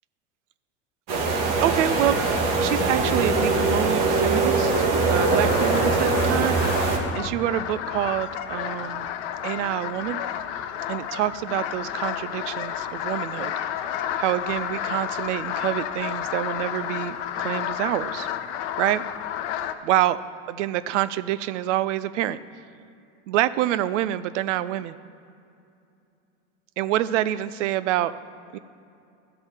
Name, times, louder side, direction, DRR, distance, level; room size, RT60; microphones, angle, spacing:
sound 1, 1.1-7.0, right 3 dB, 55° right, 1.6 m, -22 dB
voice 1, 1.6-9.1 9.4-10.2 10.9-13.5 14.2-18.3 18.8-19.0 19.8-20.2 20.5-22.4 23.3-25.0 26.8-28.1 28.5-28.6, right 13 dB, 70° right, 15 dB, 0.5 m, -27 dB
sound 2, 4.6-19.7, left 10 dB, 65° left, 0.7 m, -31 dB
12.5 x 4.4 x 7.2 m, 2.6 s
hypercardioid pair, 85°, 37 cm